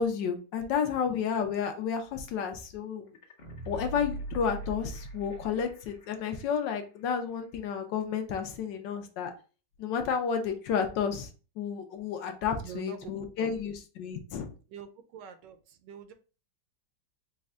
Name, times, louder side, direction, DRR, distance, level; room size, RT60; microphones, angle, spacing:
voice 1, 0.0-3.2 3.7-9.3 9.8-11.3 11.6-14.5, left 7 dB, 75° left, 6 dB, 1.3 m, -31 dB
sound 1, 3.1-6.0 6.4-6.5, right 2 dB, 40° left, 0.6 m, -40 dB
voice 2, 12.6-13.1 13.4-13.5 14.7-16.1, right 7 dB, 75° right, 8 dB, 1.2 m, -45 dB
4.3 x 2.2 x 3.6 m, 0.35 s
omnidirectional pair, 2.0 m